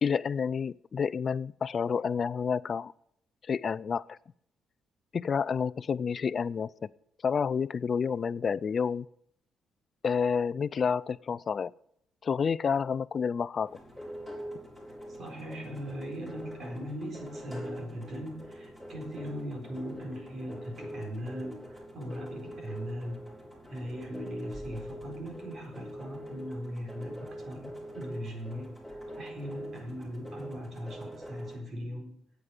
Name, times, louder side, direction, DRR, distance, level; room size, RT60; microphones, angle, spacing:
voice 1, 0.0-2.9 3.4-4.2 5.1-6.9 7.2-9.1 10.0-11.7 12.2-13.7, left 6 dB, 45° left, 20 dB, 0.4 m, -29 dB
sound 1, 13.7-31.6, equal, 15° right, 4.5 m, -44 dB
voice 2, 15.1-23.2 23.7-28.7 29.2-32.2, equal, 55° right, 1 dB, 4.3 m, -39 dB
8.8 x 8.2 x 8.7 m, 0.71 s
cardioid pair, 90°, 0 cm